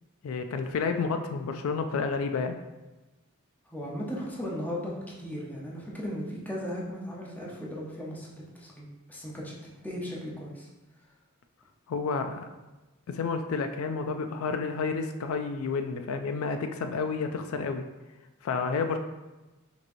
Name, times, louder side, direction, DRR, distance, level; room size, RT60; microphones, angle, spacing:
voice 1, 0.2-2.6 11.9-12.5 13.1-17.9 18.4-19.0, left 4 dB, 75° left, 7 dB, 0.3 m, -30 dB
voice 2, 3.7-9.5 9.8-10.7, equal, 10° left, -4 dB, 0.8 m, -37 dB
5.9 x 2.9 x 2.6 m, 1.1 s
head